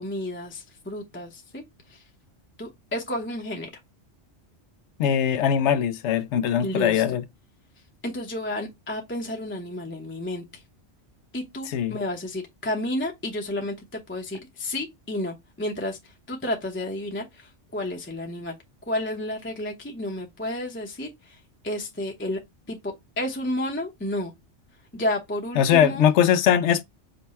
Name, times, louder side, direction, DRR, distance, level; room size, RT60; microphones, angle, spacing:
voice 1, 0.0-1.6 2.6-3.7 6.6-7.0 8.0-10.4 11.3-16.0 16.3-18.5 18.9-21.1 21.6-22.4 22.7-24.3 24.9-26.1, left 1 dB, 10° left, 0.7 m, -31 dB
voice 2, 5.0-7.2 11.7-12.0 25.5-26.8, left 9 dB, 80° left, 0.9 m, -21 dB
5.3 x 2.2 x 4.1 m
omnidirectional pair, 1.2 m